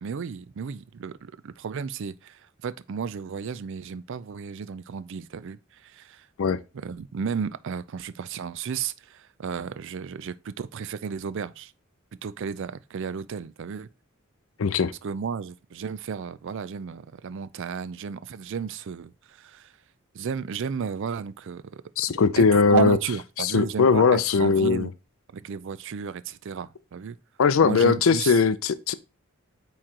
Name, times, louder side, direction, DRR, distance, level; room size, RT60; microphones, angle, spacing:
voice 1, 0.0-6.3 6.7-11.7 12.2-13.9 15.0-19.7 20.1-21.8 22.4-24.9 25.3-27.2 27.6-28.3, right 6 dB, 65° right, 0.4 m, -33 dB
voice 2, 14.6-14.9 22.0-23.0 23.4-24.9 27.4-28.9, left 5 dB, 70° left, 0.5 m, -20 dB
8.7 x 3.2 x 3.7 m
head